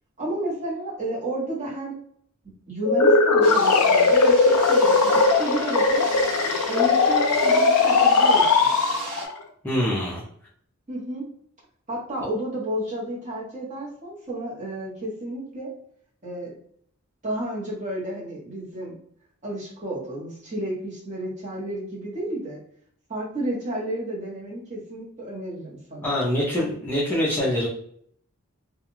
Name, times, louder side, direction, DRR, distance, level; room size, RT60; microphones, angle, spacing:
voice 1, 0.2-2.0 2.4-6.1 6.7-8.8 9.9-10.0 10.9-11.3 11.9-15.7 16.2-16.5 17.2-19.0 19.4-22.6 23.1-26.2, right 1 dB, 35° right, -5 dB, 0.9 m, -31 dB
sound 1, 2.8-9.3, left 4 dB, 90° left, 0.4 m, -19 dB
sound 2, 3.4-9.3, right 2 dB, 50° right, 0.6 m, -36 dB
voice 2, 9.6-10.2 26.0-27.7, left 1 dB, 10° left, -6 dB, 0.4 m, -24 dB
2.3 x 2.2 x 3.0 m, 0.65 s
head